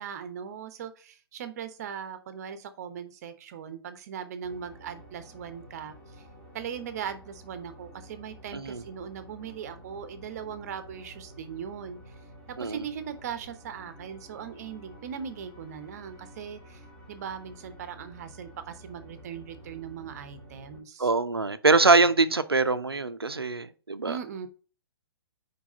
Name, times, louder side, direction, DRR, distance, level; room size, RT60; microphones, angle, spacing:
voice 1, 0.0-6.2 6.5-12.0 12.6-21.1 24.0-24.5, right 8 dB, 40° right, 1.0 m, -39 dB
sound 1, 4.4-20.8, equal, 15° left, 2.5 m, -50 dB
voice 2, 8.5-8.8 12.6-12.8 21.0-24.2, right 3 dB, 85° right, 0.6 m, -23 dB
4.9 x 4.7 x 5.5 m
figure-of-eight pair, 125°, 13 cm